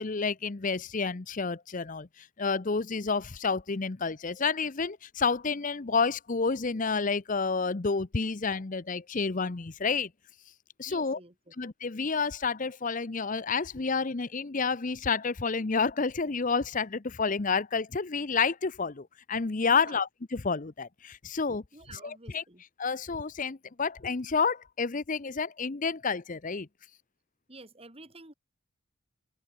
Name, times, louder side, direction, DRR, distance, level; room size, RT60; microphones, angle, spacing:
voice 1, 0.0-10.1 10.8-11.2 11.6-21.6 22.0-22.4 22.8-26.7, left 5 dB, 35° left, 0.7 m, -30 dB
voice 2, 10.9-11.3 19.7-20.0 21.7-22.6 27.5-28.3, right 2 dB, 25° right, 2.9 m, -49 dB
open air
head